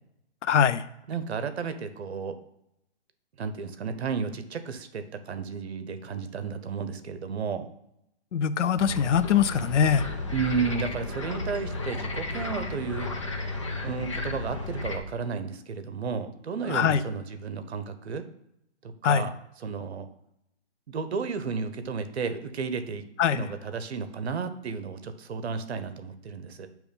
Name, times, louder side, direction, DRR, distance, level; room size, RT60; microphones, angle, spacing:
voice 1, 0.4-0.8 8.3-10.0 16.7-17.0 19.0-19.3 23.2-23.4, left 8 dB, 85° left, 15 dB, 0.6 m, -22 dB
voice 2, 1.1-2.4 3.4-7.7 10.3-13.1 13.8-18.3 18.8-19.3 19.6-20.1 20.9-23.1 23.3-26.7, right 5 dB, 65° right, 10 dB, 0.9 m, -33 dB
sound 1, 8.8-15.0, left 2 dB, 30° left, 0.5 m, -33 dB
8.4 x 3.1 x 5.2 m, 0.80 s
hypercardioid pair, 170°, 35 cm